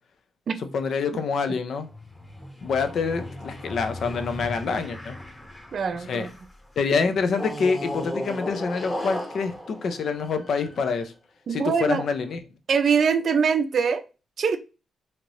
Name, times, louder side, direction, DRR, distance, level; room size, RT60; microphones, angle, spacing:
voice 1, 0.6-1.9 2.6-5.2 6.1-6.3 6.8-11.1 11.5-12.4, left 5 dB, 70° left, 0.5 m, -26 dB
sound 1, 1.9-6.5 7.3-10.9, left 1 dB, 15° left, 0.8 m, -36 dB
voice 2, 5.7-6.3 11.5-12.0 12.7-14.0 14.4-14.6, right 6 dB, 65° right, 0.4 m, -23 dB
2.9 x 2.5 x 3.0 m
cardioid pair, 75°, 0 cm